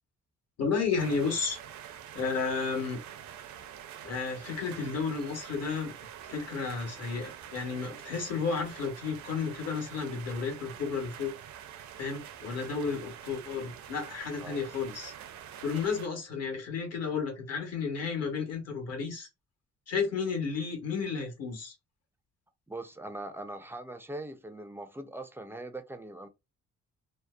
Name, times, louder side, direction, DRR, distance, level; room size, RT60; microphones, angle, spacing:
voice 1, 0.6-1.6 2.1-3.0 4.0-5.9 6.3-11.3 12.0-15.1 15.6-19.3 19.9-21.7, left 5 dB, 55° left, 1.1 m, -32 dB
sound 1, 1.0-16.1, right 9 dB, 70° right, 0.5 m, -46 dB
voice 2, 22.7-26.3, right 2 dB, 10° right, 0.3 m, -41 dB
2.7 x 2.0 x 2.3 m
cardioid pair, 90°, 30 cm